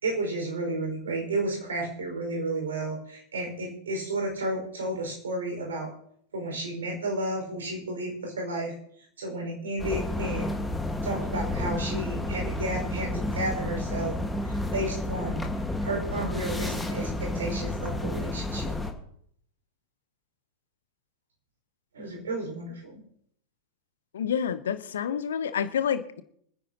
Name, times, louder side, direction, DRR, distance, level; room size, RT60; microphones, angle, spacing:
voice 1, 0.0-5.9 6.3-8.7 9.2-10.5 11.0-14.2 14.5-15.5 15.8-18.8 21.9-23.0, right 2 dB, 65° right, 1 dB, 5.1 m, -32 dB
sound 1, 9.8-18.9, left 2 dB, 5° left, 1.6 m, -31 dB
voice 2, 24.1-26.2, left 8 dB, 65° left, 12 dB, 0.9 m, -28 dB
25.5 x 10.0 x 2.9 m, 0.68 s
figure-of-eight pair, 90°, 0 cm